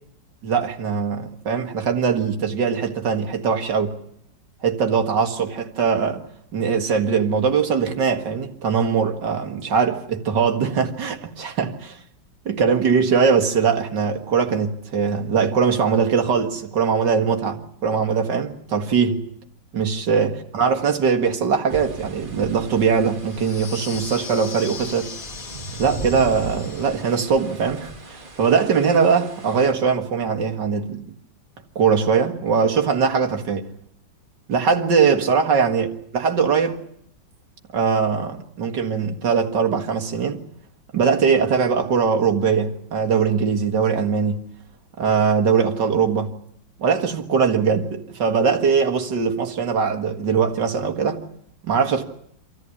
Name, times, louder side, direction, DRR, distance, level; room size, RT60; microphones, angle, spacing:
voice 1, 0.4-3.9 4.6-6.2 6.5-12.0 12.5-19.2 19.7-25.1 25.8-31.1 31.8-33.7 34.5-35.9 36.1-36.8 37.7-40.4 40.9-44.4 45.0-46.3 46.8-51.2 51.6-52.0, right 6 dB, 70° right, 2.5 m, -21 dB
sound 1, 21.7-29.7, right 2 dB, 30° right, 2.0 m, -38 dB
sound 2, 23.3-27.3, left 6 dB, 65° left, 1.9 m, -38 dB
26.5 x 14.5 x 9.8 m
omnidirectional pair, 1.9 m